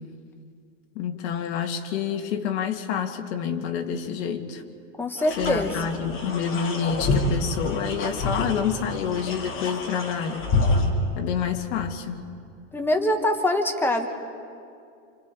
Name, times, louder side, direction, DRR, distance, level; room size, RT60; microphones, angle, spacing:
voice 1, 1.0-4.6 5.4-10.5 11.1-12.2, left 7 dB, 60° left, 4 dB, 2.3 m, -28 dB
voice 2, 5.0-5.9 12.7-14.1, left 1 dB, 5° left, 4 dB, 1.5 m, -24 dB
sound 1, 5.2-10.9, left 2 dB, 30° left, 2.9 m, -27 dB
29.0 x 27.5 x 4.9 m, 2.4 s
supercardioid pair, 145°, 39 cm